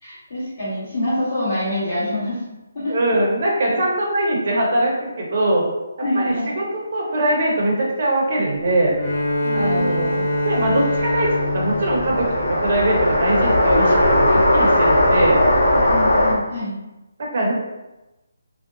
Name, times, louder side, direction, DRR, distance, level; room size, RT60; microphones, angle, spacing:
voice 1, 0.0-2.4 2.7-2.9 3.7-3.8 6.0-6.5 9.4-10.0 15.7-16.8, left 1 dB, 25° left, -12 dB, 1.4 m, -26 dB
voice 2, 2.9-5.6 6.1-8.9 9.5-15.4 17.2-17.5, right 1 dB, 40° right, -3 dB, 0.6 m, -22 dB
Bowed string instrument, 8.9-13.2, left 1 dB, 50° left, 1.0 m, -24 dB
sound 1, 9.6-16.3, left 1 dB, 70° left, 0.7 m, -19 dB
2.7 x 2.1 x 2.4 m, 1.0 s
hypercardioid pair, 175°, 0 cm